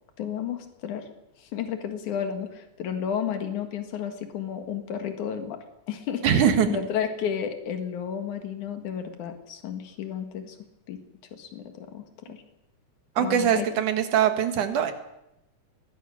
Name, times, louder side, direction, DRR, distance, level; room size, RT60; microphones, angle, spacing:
voice 1, 0.2-1.1 1.4-10.6 10.9-11.0 11.3-12.4 13.2-13.7, left 8 dB, 85° left, 7 dB, 3.2 m, -32 dB
voice 2, 6.2-6.8 13.2-14.9, right 8 dB, 90° right, 7 dB, 3.2 m, -22 dB
20.5 x 20.5 x 6.4 m, 0.87 s
omnidirectional pair, 3.4 m